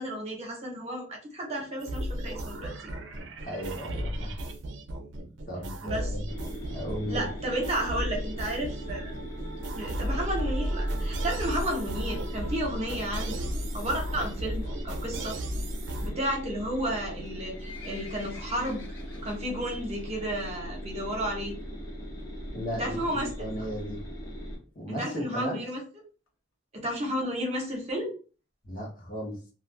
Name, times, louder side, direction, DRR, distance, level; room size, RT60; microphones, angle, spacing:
voice 1, 0.0-2.7 5.8-6.1 7.1-9.1 9.7-15.4 16.0-18.8 19.2-21.6 22.7-23.3 24.9-25.8 26.7-28.1, right 1 dB, 35° right, 1 dB, 1.0 m, -32 dB
sound 1, 1.8-16.1, equal, 75° right, 0.5 m, -34 dB
voice 2, 3.4-4.4 5.5-6.3 6.7-7.3 22.5-24.0 24.7-25.6 28.6-29.4, equal, 45° left, -1 dB, 1.0 m, -35 dB
sound 2, 6.3-24.5, equal, 20° left, 0.8 m, -39 dB
Livestock farm animals working animals, 17.1-19.8 20.2-20.4 20.8-20.9 21.5-21.6 21.9-22.0 22.2-22.3 22.8-23.1 23.7-23.8 24.0-24.1 24.2-24.3 24.6-24.7 25.1-25.2 25.7-25.8 26.3-26.4, left 4 dB, 85° left, 0.9 m, -49 dB
2.5 x 2.4 x 3.2 m, 0.35 s
head